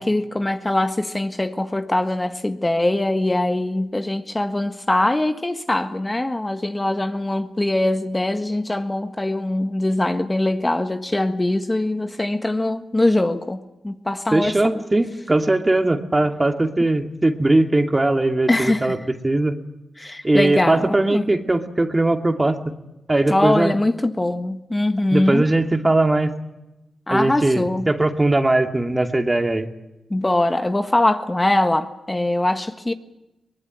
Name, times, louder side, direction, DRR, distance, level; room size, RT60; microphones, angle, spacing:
voice 1, 0.0-14.8 18.5-18.9 20.0-21.2 23.3-25.4 27.1-27.9 30.1-32.9, left 1 dB, 20° left, 1.6 m, -22 dB
voice 2, 14.3-19.6 20.2-22.6 23.1-23.7 25.1-26.3 27.1-29.7, right 2 dB, 25° right, 2.5 m, -19 dB
23.0 x 20.5 x 9.3 m
cardioid pair, 60°, 0 cm